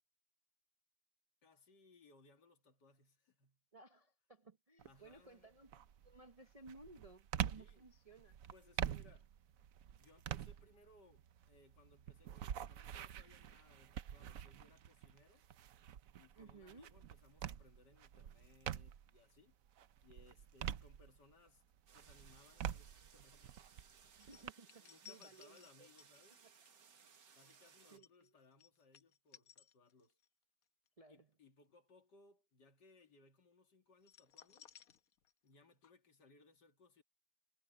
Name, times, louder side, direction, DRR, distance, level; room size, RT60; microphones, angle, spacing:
voice 1, 1.4-3.6 4.8-5.5 7.6-7.9 8.5-9.3 10.0-15.4 16.1-19.6 20.0-21.7 21.9-23.7 24.0-24.3 24.8-26.5 27.3-30.2 31.1-34.7 35.4-37.0, left 2 dB, 80° left, 2.8 m, -67 dB
voice 2, 3.7-8.4 16.4-16.9 24.2-25.9 26.4-26.5 27.9-28.3 31.0-31.3, right 3 dB, 30° right, 0.6 m, -59 dB
sound 1, 4.8-5.2 5.7-19.2 19.6-21.5 21.9-24.5, right 10 dB, 60° right, 1.0 m, -46 dB
sound 2, 21.9-28.0, right 6 dB, 85° right, 2.2 m, -65 dB
sound 3, 24.2-30.3 30.6-30.9 34.0-35.6 35.8-35.9, left 8 dB, 60° left, 1.4 m, -62 dB
omnidirectional pair, 1.8 m